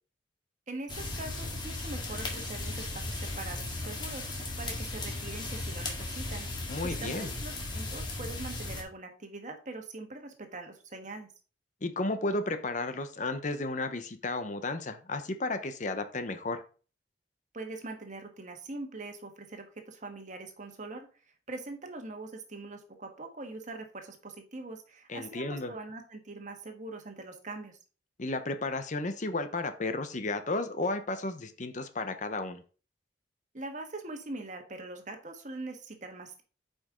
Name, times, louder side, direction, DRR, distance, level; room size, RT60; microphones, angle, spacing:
voice 1, 0.7-11.3 17.5-21.1 21.5-27.8 33.5-36.4, right 2 dB, 40° right, 5 dB, 1.4 m, -42 dB
sound 1, 0.9-8.8, left 2 dB, 25° left, 1.7 m, -36 dB
voice 2, 6.7-7.3 11.8-16.6 25.1-25.7 28.2-32.6, left 2 dB, 40° left, 9 dB, 0.8 m, -33 dB
8.7 x 5.3 x 3.7 m, 0.37 s
head